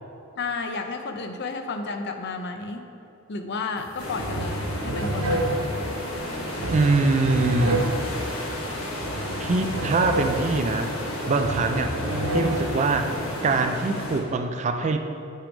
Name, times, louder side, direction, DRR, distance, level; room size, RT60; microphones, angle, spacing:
voice 1, 0.4-2.8 3.3-5.9, left 3 dB, 55° left, 6 dB, 0.5 m, -32 dB
sound 1, 3.8-13.4, right 1 dB, 70° right, 0.9 m, -30 dB
sound 2, 4.0-14.2, left 1 dB, 75° left, 1.1 m, -32 dB
voice 2, 6.7-7.9 9.4-10.9 11.3-11.9 12.3-13.1 13.4-15.0, right 3 dB, 35° right, 7 dB, 0.4 m, -23 dB
9.0 x 3.4 x 5.1 m, 2.7 s
head